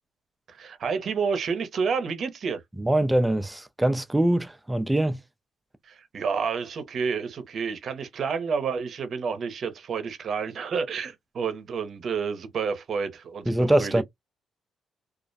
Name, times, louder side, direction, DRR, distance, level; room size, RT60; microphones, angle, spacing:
voice 1, 0.5-2.6 5.8-14.0, right 5 dB, 55° right, 0.7 m, -30 dB
voice 2, 2.8-5.2 13.5-14.0, right 1 dB, 10° right, 0.4 m, -23 dB
2.4 x 2.1 x 2.6 m
cardioid pair, 90°, 0 cm